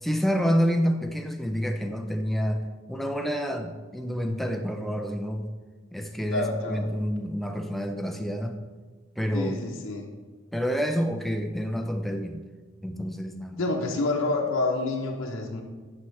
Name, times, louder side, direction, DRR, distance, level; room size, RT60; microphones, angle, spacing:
voice 1, 0.0-5.5 5.9-8.6 9.2-9.6 10.5-12.4 12.8-13.7, equal, ahead, 4 dB, 0.4 m, -28 dB
voice 2, 6.3-6.8 9.3-10.1 13.6-15.6, left 2 dB, 85° left, 0 dB, 0.8 m, -28 dB
9.7 x 5.7 x 3.2 m, 1.4 s
head